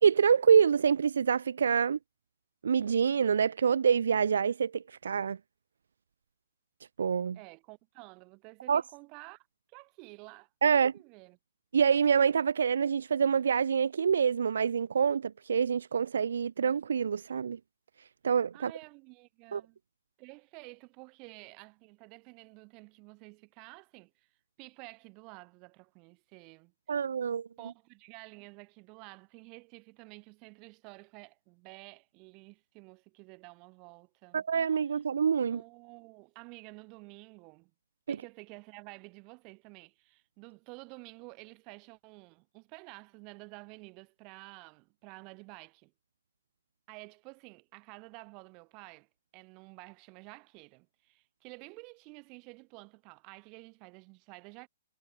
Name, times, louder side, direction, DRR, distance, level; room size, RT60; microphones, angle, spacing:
voice 1, 0.0-2.0 2.6-5.4 7.0-7.4 8.7-8.8 10.6-10.9 11.7-17.6 18.2-18.7 19.5-19.6 26.9-27.5 34.3-35.6 38.1-38.2, right 7 dB, 80° right, 0.7 m, -26 dB
voice 2, 7.3-11.4 18.5-19.8 20.2-24.3 24.6-27.0 27.6-34.4 35.4-37.7 38.1-45.9 46.9-54.7, right 30 dB, 25° right, 5.8 m, -51 dB
hypercardioid pair, 165°, 0 cm